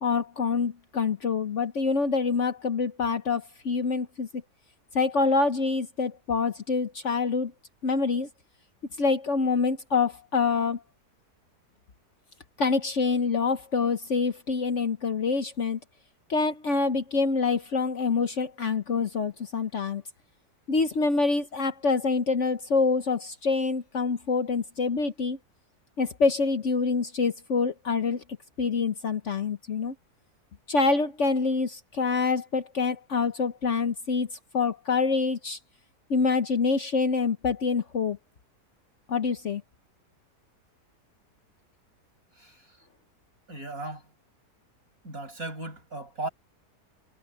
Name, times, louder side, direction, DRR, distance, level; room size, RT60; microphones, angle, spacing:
voice 1, 0.0-4.4 4.9-7.5 7.8-8.3 9.0-10.8 12.6-15.8 16.3-20.0 20.7-25.4 26.0-28.2 28.6-29.9 30.7-35.6 36.1-38.2 39.1-39.6, left 4 dB, 50° left, 1.2 m, -26 dB
voice 2, 43.5-44.0 45.0-46.3, right 2 dB, 60° right, 8.5 m, -36 dB
omnidirectional pair, 1.7 m